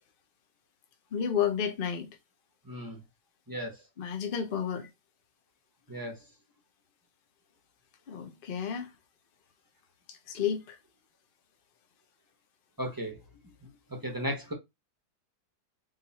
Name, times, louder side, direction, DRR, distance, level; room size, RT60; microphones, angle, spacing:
voice 1, 1.1-2.1 4.0-4.9 8.1-8.9 10.1-10.8, left 8 dB, 50° left, 0.6 m, -31 dB
voice 2, 2.7-3.0 3.5-3.7 5.9-6.1 12.8-13.2 14.0-14.5, equal, 20° right, 0.6 m, -35 dB
3.9 x 2.8 x 4.2 m
omnidirectional pair, 1.9 m